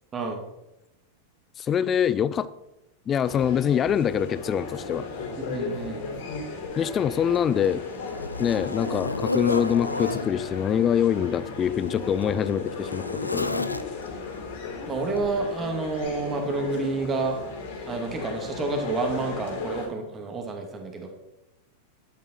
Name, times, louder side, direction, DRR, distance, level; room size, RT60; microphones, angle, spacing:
voice 1, 1.6-2.5 3.1-5.1 6.8-7.8 8.4-13.8, left 8 dB, 25° left, 18 dB, 0.6 m, -24 dB
sound 1, 3.2-19.9, left 4 dB, 55° left, 3.3 m, -36 dB
voice 2, 5.4-6.0 14.9-17.4 17.9-21.1, right 3 dB, 20° right, 3 dB, 2.5 m, -29 dB
Zipper (clothing), 6.6-6.8 7.3-10.3 11.2-14.2 15.2-15.4 16.0-16.1, left 2 dB, 85° left, 0.6 m, -32 dB
12.0 x 10.5 x 4.5 m, 0.90 s
figure-of-eight pair, 90°, 0 cm